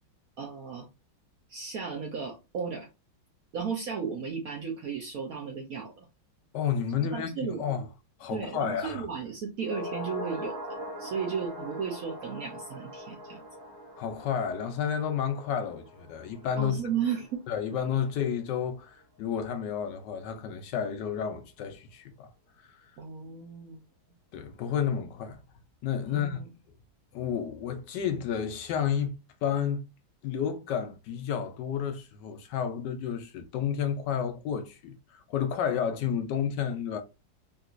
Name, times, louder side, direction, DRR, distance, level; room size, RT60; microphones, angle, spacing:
voice 1, 0.4-0.9 1.5-2.9 3.5-6.1 7.0-7.7 8.3-10.6 11.0-13.4 16.6-17.4 23.0-23.8 26.1-26.5, right 6 dB, 65° right, 0.9 m, -34 dB
voice 2, 6.5-7.9 8.2-9.0 14.0-16.8 17.5-22.3 24.3-25.4 25.8-26.4 27.1-29.1 29.4-29.8 30.2-37.0, left 8 dB, 75° left, 1.1 m, -31 dB
sound 1, 9.6-18.1 18.4-18.5, equal, 50° right, 1.2 m, -42 dB
3.7 x 2.6 x 2.4 m
omnidirectional pair, 2.1 m